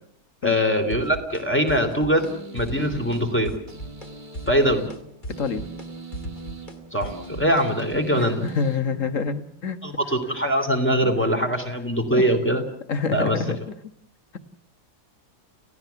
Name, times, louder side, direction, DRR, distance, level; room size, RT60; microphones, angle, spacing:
voice 1, 0.4-3.5 4.5-4.9 6.9-8.4 9.8-12.6 13.1-13.4, equal, 5° left, 4 dB, 3.1 m, -22 dB
sound 1, 0.9-1.4 1.7-2.3 2.6-3.2 3.5-4.1 4.3-8.0, right 1 dB, 30° left, 2.4 m, -37 dB
sound 2, 2.2-9.6, right 2 dB, 30° right, 2.3 m, -41 dB
voice 2, 8.2-9.8 11.0-11.2 12.1-12.3 12.9-13.8, left 5 dB, 55° left, 10 dB, 1.7 m, -27 dB
30.0 x 16.0 x 7.1 m, 0.67 s
omnidirectional pair, 1.7 m